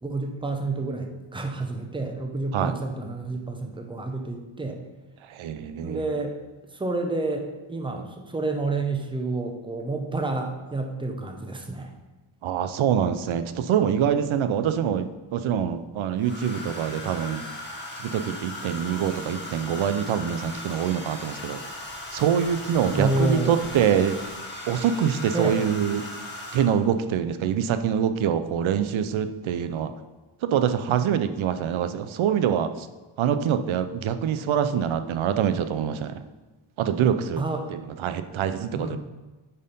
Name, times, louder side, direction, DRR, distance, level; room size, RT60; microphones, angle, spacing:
voice 1, 0.0-4.8 5.8-6.4 6.7-11.9 22.9-23.6 25.3-25.6 37.4-37.7 38.7-39.0, right 2 dB, 10° right, 4 dB, 0.7 m, -29 dB
voice 2, 5.3-6.0 12.4-15.1 15.3-17.4 18.0-21.6 22.1-24.2 24.7-26.0 26.5-29.9 30.4-32.9 33.2-36.2 36.8-37.4 37.7-39.0, right 8 dB, 70° right, 11 dB, 0.6 m, -25 dB
Domestic sounds home sounds, 14.6-14.8 16.2-26.9 28.2-28.4 28.7-29.1, left 1 dB, 20° left, 1.6 m, -38 dB
8.7 x 4.5 x 5.3 m, 1.2 s
wide cardioid pair, 140°, 50 cm